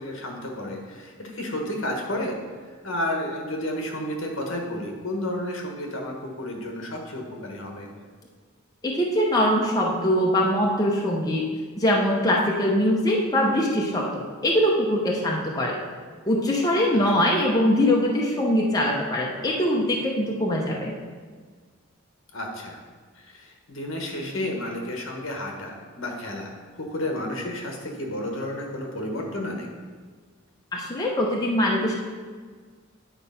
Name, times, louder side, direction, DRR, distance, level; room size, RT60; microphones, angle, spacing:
voice 1, 0.0-2.4 2.8-7.9 16.9-17.2 22.3-22.8 23.2-26.5 26.8-29.7, left 1 dB, 65° left, 2 dB, 1.3 m, -31 dB
voice 2, 8.8-11.4 11.8-15.8 16.3-20.9 30.7-32.0, left 1 dB, 20° left, -3 dB, 0.8 m, -22 dB
9.0 x 4.2 x 5.6 m, 1.6 s
head